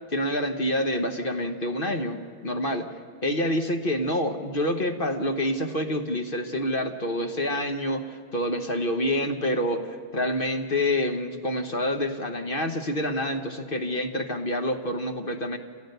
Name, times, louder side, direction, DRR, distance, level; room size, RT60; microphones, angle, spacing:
voice 1, 0.1-2.9 3.2-15.6, left 1 dB, 40° left, 6 dB, 1.2 m, -27 dB
28.5 x 14.0 x 6.7 m, 2.2 s
omnidirectional pair, 1.7 m